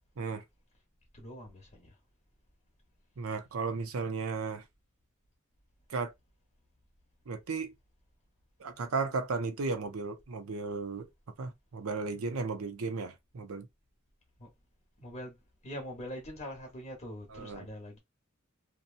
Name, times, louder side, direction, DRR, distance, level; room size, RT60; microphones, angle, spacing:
voice 1, 1.1-2.0 14.4-14.5 15.0-15.4 15.6-18.0, equal, 35° left, 1.0 m, -43 dB
voice 2, 3.2-4.6 5.9-6.1 7.3-7.7 8.6-11.1 11.4-13.7 17.3-17.7, right 4 dB, 85° right, 0.6 m, -35 dB
2.7 x 2.1 x 2.5 m
head